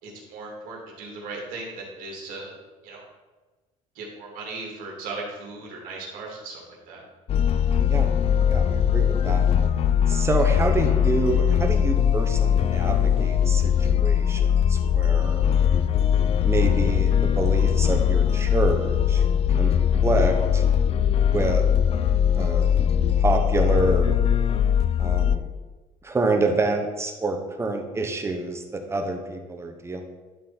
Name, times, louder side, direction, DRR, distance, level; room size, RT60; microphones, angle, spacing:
voice 1, 0.0-2.5 2.8-3.0 3.9-6.6 6.9-7.0, right 3 dB, 80° right, -2 dB, 2.8 m, -37 dB
sound 1, 7.3-25.4, left 8 dB, 45° left, 0.4 m, -21 dB
voice 2, 8.5-9.4 10.1-15.5 16.4-19.2 19.6-19.7 20.0-20.6 21.3-21.6 22.4-22.7 23.2-24.2 25.0-25.5 26.0-30.0, right 3 dB, 20° right, 4 dB, 1.0 m, -27 dB
11.5 x 4.2 x 4.3 m, 1.2 s
cardioid pair, 130°, 14 cm